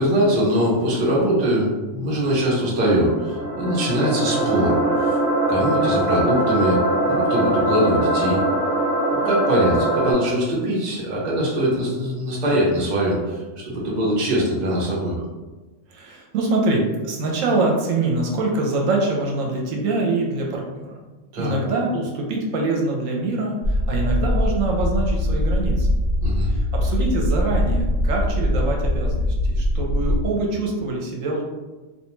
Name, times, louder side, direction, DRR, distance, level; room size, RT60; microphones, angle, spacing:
voice 1, 0.0-5.2 5.5-6.8 7.1-8.4 9.2-15.2 21.3-21.6 26.2-26.5, equal, 40° right, -5 dB, 0.7 m, -22 dB
sound 1, 3.0-10.1, right 1 dB, 10° left, 1.3 m, -22 dB
voice 2, 15.9-21.0 21.4-25.9 26.5-31.4, right 2 dB, 80° right, -1 dB, 1.0 m, -24 dB
sound 2, 23.6-30.3, left 1 dB, 80° left, 0.9 m, -22 dB
2.4 x 2.2 x 3.0 m, 1.2 s
omnidirectional pair, 1.3 m